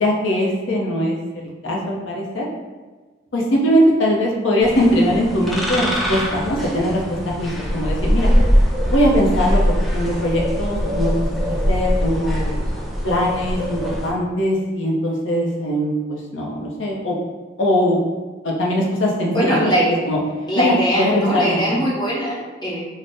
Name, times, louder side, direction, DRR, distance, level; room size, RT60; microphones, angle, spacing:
voice 1, 0.0-2.5 3.3-8.3 8.8-11.1 11.5-12.5 13.0-17.1 17.6-18.0 18.4-19.7 20.1-20.2 20.6-21.8, equal, 70° left, -2 dB, 0.6 m, -21 dB
sound 1, 4.6-14.1, equal, ahead, 0.3 m, -21 dB
voice 2, 19.3-19.9 20.5-22.8, equal, 25° left, -8 dB, 1.0 m, -21 dB
2.6 x 2.0 x 3.4 m, 1.3 s
head